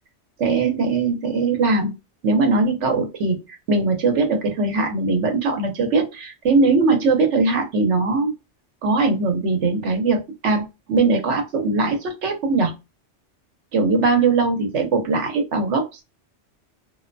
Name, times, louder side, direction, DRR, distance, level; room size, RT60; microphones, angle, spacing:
voice 1, 0.4-1.9 2.2-3.4 3.7-8.3 8.8-12.7 13.7-16.0, right 3 dB, 80° right, 4 dB, 1.1 m, -20 dB
2.6 x 2.1 x 2.5 m, 0.24 s
omnidirectional pair, 1.2 m